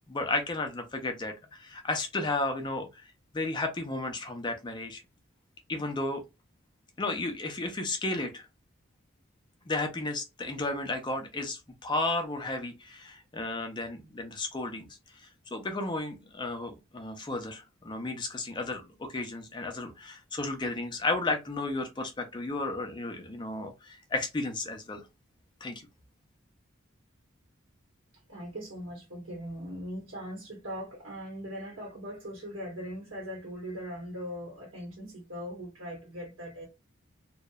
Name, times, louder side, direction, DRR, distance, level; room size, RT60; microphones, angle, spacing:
voice 1, 0.1-2.9 3.3-5.0 5.7-6.2 7.0-8.5 9.7-14.9 15.5-25.0 25.6-25.8, left 2 dB, 20° left, 0.4 m, -33 dB
voice 2, 28.3-36.7, equal, 80° right, 0.9 m, -40 dB
2.8 x 2.0 x 2.2 m
head